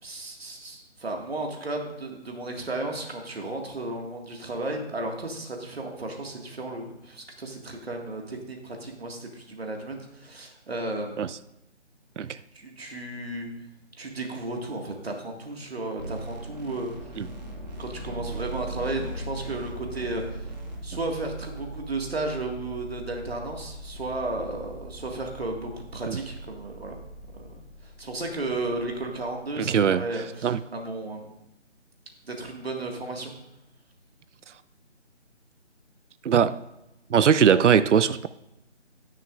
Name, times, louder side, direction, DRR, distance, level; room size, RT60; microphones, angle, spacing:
voice 1, 0.0-11.3 12.5-13.5 14.0-16.9 17.8-20.5 20.8-27.0 27.3-31.3 32.3-33.3, right 2 dB, 55° right, 2 dB, 1.9 m, -34 dB
sound 1, 16.0-20.8, right 1 dB, 35° right, 1.6 m, -39 dB
sound 2, 16.9-29.6, equal, 25° left, 1.6 m, -42 dB
voice 2, 29.6-30.0 30.4-30.6 36.2-36.6 37.1-38.3, right 7 dB, 75° right, 15 dB, 0.5 m, -20 dB
19.0 x 6.6 x 2.5 m, 0.89 s
figure-of-eight pair, 165°, 36 cm